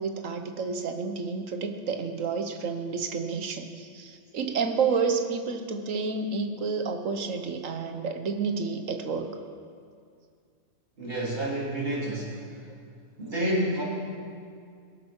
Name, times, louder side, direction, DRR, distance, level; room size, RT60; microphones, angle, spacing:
voice 1, 0.0-9.4, right 5 dB, 90° right, 7 dB, 1.4 m, -30 dB
voice 2, 11.0-12.6 13.2-13.8, right 1 dB, 50° right, -7 dB, 3.9 m, -29 dB
21.5 x 7.7 x 6.3 m, 2.2 s
omnidirectional pair, 1.3 m